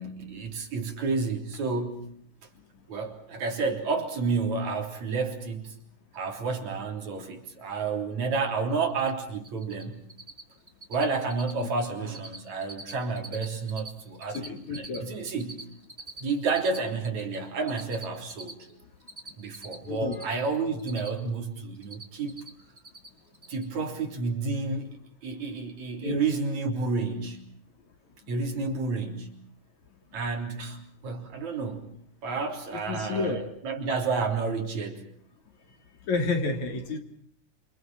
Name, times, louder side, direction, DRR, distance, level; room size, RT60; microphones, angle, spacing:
voice 1, 0.0-2.1 2.9-5.7 6.1-10.0 10.9-15.6 16.2-18.7 19.4-22.5 23.5-25.0 25.2-27.5 28.3-29.4 30.1-31.9 32.2-35.1, right 4 dB, 60° right, 3 dB, 4.7 m, -30 dB
Cricket, 9.0-9.1 9.4-9.8 10.1-10.4 10.7-11.0 11.3-11.6 11.9-12.4 12.6-13.9 14.1-17.4 17.7-20.2 20.5-21.4 21.6-22.5 22.8-23.1 23.3-23.6, right 2 dB, 15° right, 3.1 m, -43 dB
voice 2, 14.3-15.1 19.9-20.2 26.0-26.2 32.9-33.4 36.1-37.0, left 3 dB, 60° left, 6 dB, 4.3 m, -30 dB
28.0 x 27.5 x 6.1 m, 0.62 s
omnidirectional pair, 3.7 m